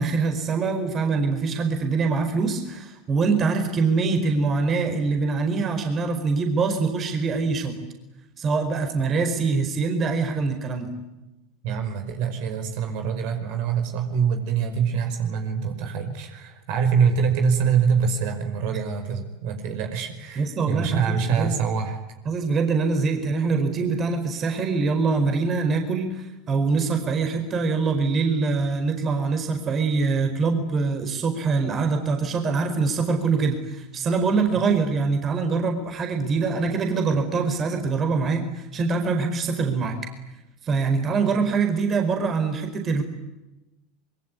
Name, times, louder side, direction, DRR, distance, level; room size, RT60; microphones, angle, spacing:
voice 1, 0.0-7.8 8.4-10.9 18.7-18.8 20.4-21.6 22.2-40.0 40.6-43.0, right 4 dB, 30° right, 5 dB, 4.8 m, -24 dB
voice 2, 11.6-22.0, right 6 dB, 55° right, 5 dB, 5.4 m, -24 dB
26.0 x 23.5 x 9.7 m, 1.0 s
figure-of-eight pair, 80°, 0 cm